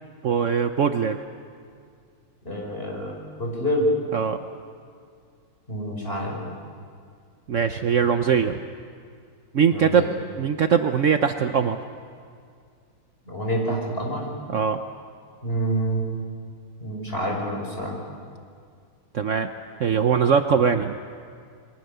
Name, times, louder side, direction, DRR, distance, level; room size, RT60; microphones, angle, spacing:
voice 1, 0.2-1.2 4.1-4.4 7.5-8.6 9.5-10.0 10.4-11.8 14.5-14.8 19.1-19.5 19.8-20.9, right 7 dB, 80° right, 7 dB, 0.6 m, -21 dB
voice 2, 2.4-3.9 5.7-6.4 9.7-10.1 13.3-14.3 15.4-16.0 16.8-17.9, right 1 dB, 25° left, -1 dB, 5.8 m, -27 dB
28.5 x 23.0 x 6.8 m, 2.2 s
omnidirectional pair, 2.4 m